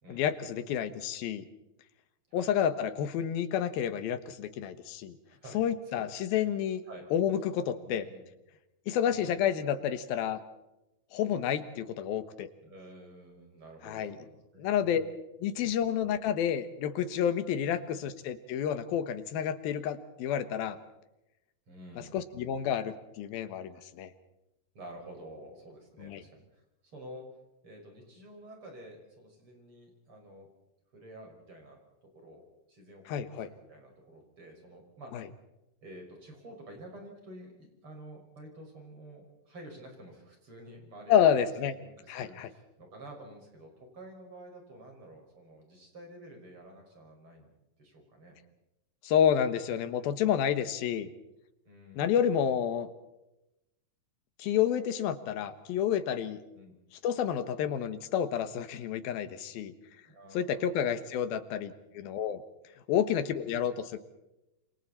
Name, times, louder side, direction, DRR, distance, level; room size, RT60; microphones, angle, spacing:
voice 1, 0.1-1.4 2.3-5.2 5.5-6.8 7.1-8.1 8.9-10.4 11.1-12.5 13.8-14.2 14.6-15.0 15.4-20.8 22.1-24.1 26.0-26.2 33.1-33.5 35.1-35.2 41.1-41.7 42.1-42.5 49.0-51.1 52.0-52.9 54.4-56.4 57.0-59.7 60.3-62.4 62.9-64.0, left 9 dB, 80° left, 11 dB, 3.1 m, -29 dB
voice 2, 5.3-6.4 6.9-7.1 7.8-8.2 9.1-9.4 12.6-14.9 15.5-15.7 17.6-17.7 21.7-22.2 23.7-23.8 24.7-27.3 27.6-30.5 30.9-31.8 32.1-32.4 32.7-35.2 35.8-41.3 41.7-47.5 47.8-48.4 51.6-52.3 56.5-56.7 60.0-60.8, right 1 dB, 35° right, 2 dB, 6.4 m, -50 dB
28.0 x 27.0 x 4.2 m, 0.93 s
omnidirectional pair, 4.2 m